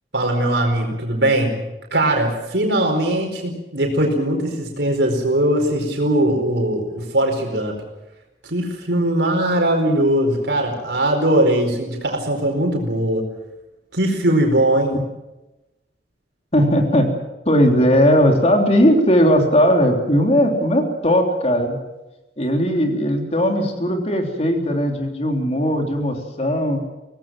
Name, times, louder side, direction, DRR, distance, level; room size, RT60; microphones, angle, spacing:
voice 1, 0.1-1.6 1.9-7.8 8.4-13.2 13.9-14.9, right 1 dB, 80° right, 2 dB, 4.5 m, -20 dB
voice 2, 16.5-17.1 17.4-21.8 22.4-26.8, equal, 35° left, 3 dB, 3.4 m, -18 dB
24.5 x 18.0 x 7.6 m, 1.0 s
head